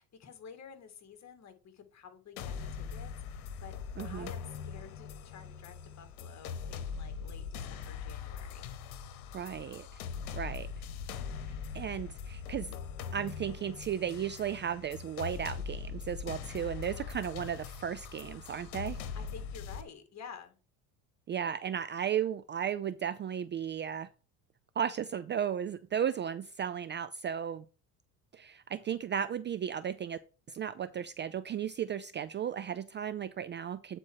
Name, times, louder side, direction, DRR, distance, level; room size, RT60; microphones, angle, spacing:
voice 1, 0.0-3.7 4.0-8.7 17.3-17.5 19.1-20.5, left 6 dB, 40° left, 2.1 m, -51 dB
sound 1, 2.4-19.8, left 6 dB, 85° left, 1.1 m, -41 dB
voice 2, 4.0-4.3 9.3-10.0 10.3-10.7 11.7-12.8 13.1-19.0 21.3-24.1 24.8-27.6 28.3-30.2 30.5-34.0, right 8 dB, 30° right, 0.4 m, -35 dB
8.8 x 4.4 x 4.6 m
supercardioid pair, 95°, 42 cm